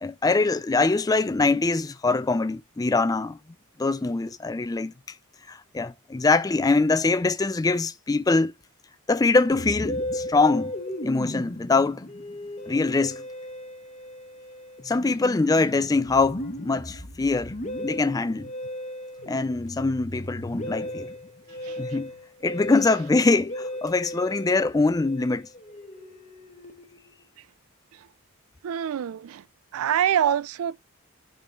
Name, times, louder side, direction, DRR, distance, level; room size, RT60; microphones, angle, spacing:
voice 1, 0.0-3.4 3.8-4.9 5.5-8.5 9.1-10.7 11.0-12.1 12.7-13.2 14.8-17.6 17.8-18.5 19.3-21.1 21.8-22.1 22.4-25.5, left 3 dB, 15° left, 0.4 m, -23 dB
Musical instrument, 9.5-27.1, left 1 dB, 30° left, 1.0 m, -36 dB
voice 2, 28.6-29.4 29.7-30.8, right 9 dB, 80° right, 0.3 m, -25 dB
11.5 x 3.8 x 3.1 m
head